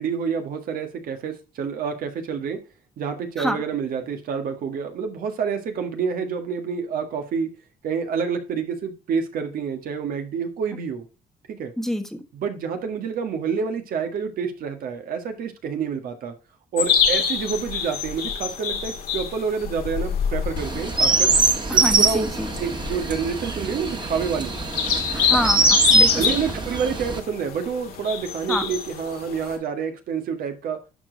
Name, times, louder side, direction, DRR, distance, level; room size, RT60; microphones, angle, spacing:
voice 1, 0.0-2.6 3.0-7.5 7.8-11.1 11.5-11.7 12.3-16.3 16.7-21.3 21.7-22.2 22.6-24.5 26.0-30.8, right 6 dB, 75° right, 6 dB, 1.7 m, -28 dB
voice 2, 11.8-12.2 21.7-22.5 25.1-26.4 28.5-28.7, equal, ahead, 7 dB, 1.4 m, -27 dB
sound 1, 16.8-29.6, left 7 dB, 80° left, 1.9 m, -27 dB
Chirp tweet, 20.6-27.2, right 3 dB, 30° right, 1.7 m, -22 dB
11.0 x 5.2 x 3.9 m, 0.31 s
cardioid pair, 90°, 15 cm